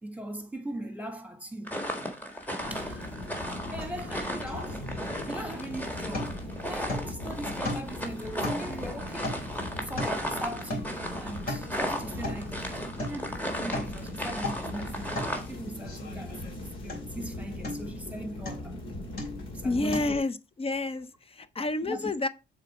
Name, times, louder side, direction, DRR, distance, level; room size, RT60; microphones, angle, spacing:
voice 1, 0.0-3.1 3.7-4.9 5.3-6.4 6.7-9.5 9.8-12.6 13.1-15.2 15.5-18.8 19.5-20.2 21.8-22.1, right 1 dB, 5° right, 1.6 m, -39 dB
sound 1, 1.7-15.5, equal, 10° left, 1.5 m, -36 dB
sound 2, 2.6-20.2, left 1 dB, 80° left, 2.3 m, -40 dB
sound 3, 3.8-4.0 4.2-5.7 6.1-6.5 6.9-7.2 7.6-8.1 8.4-10.3 10.7-11.0 11.3-11.7 12.2-12.5 13.0-13.2 13.5-14.0 14.3-14.7 15.2-15.4 15.9-16.6 16.9-17.2 17.6-18.0 18.5-18.8 19.2-19.5 19.9-20.0, left 1 dB, 50° left, 3.3 m, -36 dB
voice 2, 19.6-22.3, left 2 dB, 30° left, 0.6 m, -30 dB
6.6 x 3.8 x 4.8 m
cardioid pair, 90°, 20 cm